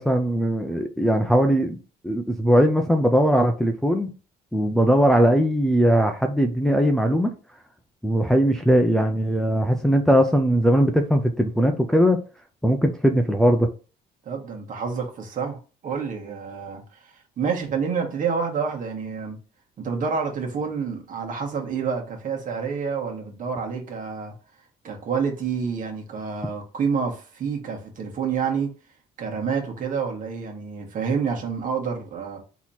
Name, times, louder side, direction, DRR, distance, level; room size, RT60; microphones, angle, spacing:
voice 1, 0.0-1.8 2.0-4.1 4.5-7.3 8.0-12.2 12.6-13.7, equal, ahead, 0.6 m, -20 dB
voice 2, 14.2-19.4 19.8-24.3 24.8-28.7 29.2-32.4, right 6 dB, 50° right, 1.5 m, -28 dB
4.0 x 3.1 x 4.2 m
cardioid pair, 110°, 17 cm